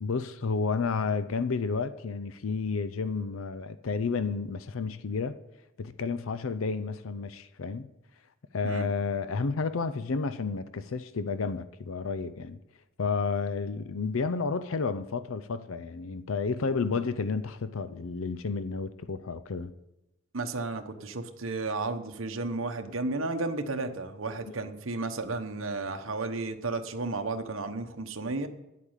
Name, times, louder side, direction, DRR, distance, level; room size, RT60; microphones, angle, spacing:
voice 1, 0.0-5.4 5.8-7.9 8.5-12.6 13.0-19.7 24.5-24.7, left 4 dB, 75° left, 0.5 m, -31 dB
voice 2, 20.3-28.5, right 3 dB, 70° right, 1.1 m, -33 dB
10.5 x 8.3 x 7.3 m
head